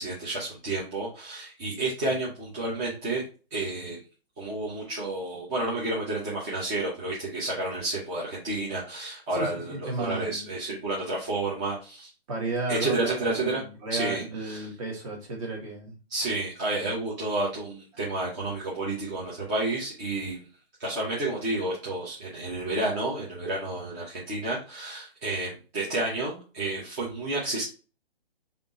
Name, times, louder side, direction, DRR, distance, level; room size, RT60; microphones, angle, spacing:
voice 1, 0.0-3.2 3.5-4.0 4.4-12.1 12.7-13.6 13.9-14.7 16.1-20.4 20.8-27.6, right 2 dB, 15° right, -6 dB, 0.8 m, -30 dB
voice 2, 9.3-10.5 12.3-15.9, right 3 dB, 35° right, -2 dB, 1.6 m, -33 dB
3.5 x 2.7 x 4.1 m, 0.35 s
hypercardioid pair, 150°, 31 cm